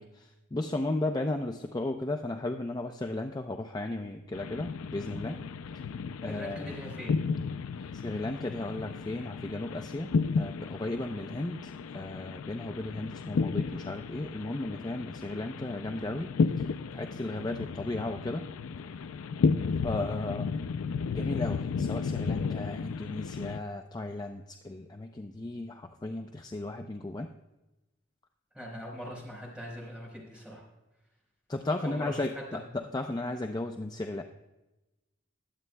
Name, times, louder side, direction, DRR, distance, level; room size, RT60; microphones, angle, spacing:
voice 1, 0.0-5.4 6.2-6.7 8.0-10.1 10.4-11.6 11.9-16.3 16.9-18.4 19.8-20.5 21.1-27.3 31.5-34.2, left 2 dB, 20° left, 5 dB, 0.5 m, -35 dB
sound 1, 4.3-23.6, left 5 dB, 90° left, 0.4 m, -33 dB
voice 2, 6.3-7.2 7.8-7.9 28.5-30.6 31.8-32.6, equal, 5° right, -3 dB, 4.1 m, -41 dB
21.5 x 8.3 x 2.2 m, 1.0 s
head